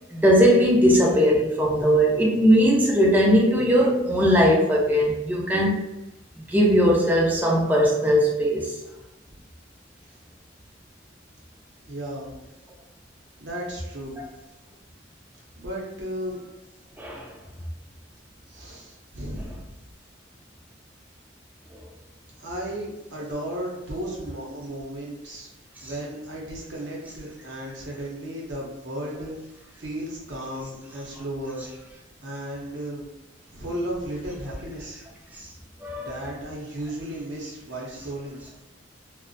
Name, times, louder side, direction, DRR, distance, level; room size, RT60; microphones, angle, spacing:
voice 1, 0.1-5.8 6.4-8.8 17.0-17.3 21.7-21.8 25.8-25.9 35.4-35.5 35.8-36.1, equal, 10° right, -3 dB, 0.4 m, -19 dB
voice 2, 11.9-12.3 13.4-14.2 15.6-16.4 18.5-19.6 22.4-25.5 25.8-29.3 29.8-31.7 32.2-33.1 33.5-35.0 36.0-38.4, right 1 dB, 65° right, -3 dB, 0.7 m, -34 dB
2.5 x 2.1 x 2.5 m, 0.97 s
head